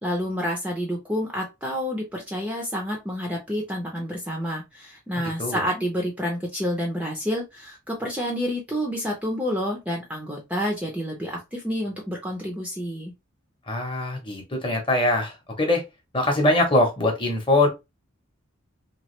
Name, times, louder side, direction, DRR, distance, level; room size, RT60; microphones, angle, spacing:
voice 1, 0.0-13.1, equal, 5° right, 0.5 m, -29 dB
voice 2, 13.7-15.8 16.1-17.7, left 2 dB, 25° left, 0.8 m, -22 dB
3.0 x 2.4 x 3.0 m
head